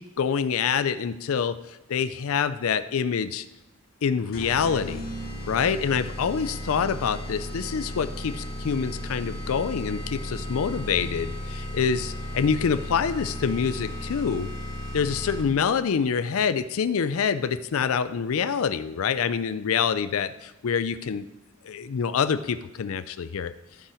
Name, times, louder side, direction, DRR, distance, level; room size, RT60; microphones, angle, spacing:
voice 1, 0.0-1.6 1.9-3.5 4.0-5.1 5.5-14.5 14.9-21.3 21.6-23.5, left 6 dB, 65° left, 14 dB, 0.4 m, -26 dB
sound 1, 4.3-15.7, equal, 45° left, 2.1 m, -35 dB
14.0 x 5.8 x 4.9 m, 0.96 s
head